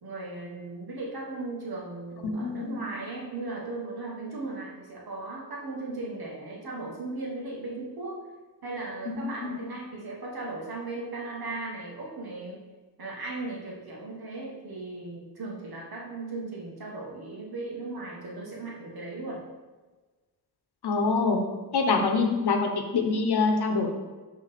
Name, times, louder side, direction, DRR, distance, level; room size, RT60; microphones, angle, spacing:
voice 1, 0.0-8.3 8.6-12.7 13.0-19.4, right 2 dB, 70° right, -3 dB, 1.7 m, -37 dB
voice 2, 2.2-2.8 9.1-9.6 20.8-21.4 21.7-23.9, left 4 dB, 85° left, 4 dB, 1.0 m, -25 dB
6.1 x 3.6 x 5.9 m, 1.3 s
wide cardioid pair, 160°, 38 cm